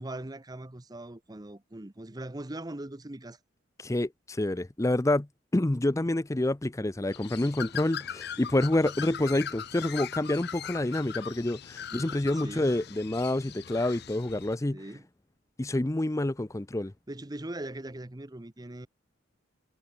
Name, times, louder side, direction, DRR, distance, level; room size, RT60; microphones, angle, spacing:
voice 1, 0.0-3.4 11.9-12.7 14.7-15.1 17.1-18.9, right 1 dB, 20° right, 0.9 m, -41 dB
voice 2, 3.8-5.3 5.5-14.8 15.6-16.9, left 1 dB, 15° left, 0.5 m, -28 dB
Bird, 7.1-14.6, left 8 dB, 55° left, 0.7 m, -40 dB
head